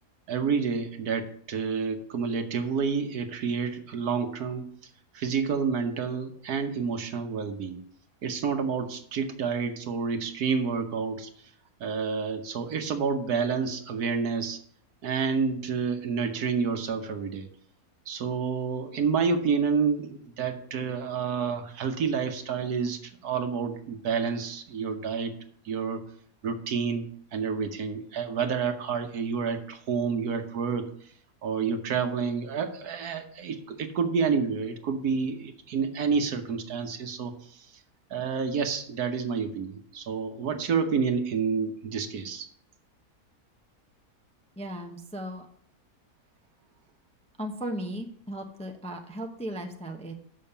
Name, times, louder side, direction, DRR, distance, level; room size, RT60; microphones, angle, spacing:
voice 1, 0.3-7.8 8.2-11.5 11.8-14.6 15.0-17.5 18.1-25.3 25.6-26.0 26.4-31.1 31.4-37.8 38.1-42.5, right 5 dB, 75° right, 6 dB, 1.5 m, -29 dB
voice 2, 44.6-45.5 47.4-50.1, right 1 dB, 5° left, 3 dB, 0.6 m, -36 dB
7.1 x 6.3 x 6.9 m, 0.63 s
omnidirectional pair, 1.7 m